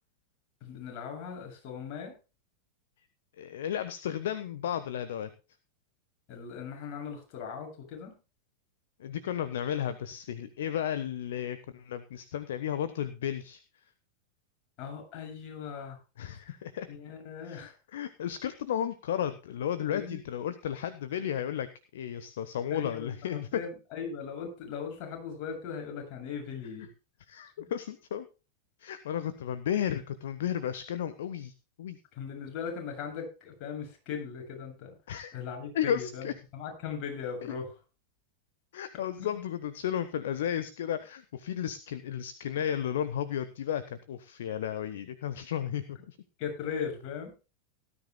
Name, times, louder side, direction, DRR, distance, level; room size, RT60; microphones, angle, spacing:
voice 1, 0.6-2.2 6.3-8.1 14.8-16.0 16.9-17.7 19.6-20.2 22.7-26.9 27.6-27.7 32.1-34.9 35.3-37.8 39.2-39.4 46.4-47.3, left 6 dB, 40° left, 2 dB, 7.5 m, -39 dB
voice 2, 3.4-5.3 9.0-13.6 16.2-16.9 17.4-21.7 21.9-23.5 27.3-28.3 28.8-31.5 31.8-32.0 35.1-35.3 35.7-36.3 37.4-37.5 38.7-46.2, left 9 dB, 60° left, 12 dB, 1.1 m, -33 dB
18.5 x 13.0 x 2.3 m, 0.32 s
figure-of-eight pair, 90°, 0 cm